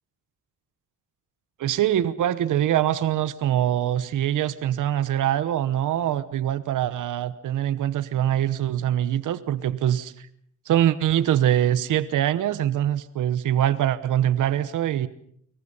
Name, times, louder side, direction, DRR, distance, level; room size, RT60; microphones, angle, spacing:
voice 1, 1.6-10.3 10.7-15.1, right 11 dB, 90° right, 15 dB, 1.1 m, -23 dB
25.5 x 23.5 x 5.6 m, 0.64 s
cardioid pair, 125°, 30 cm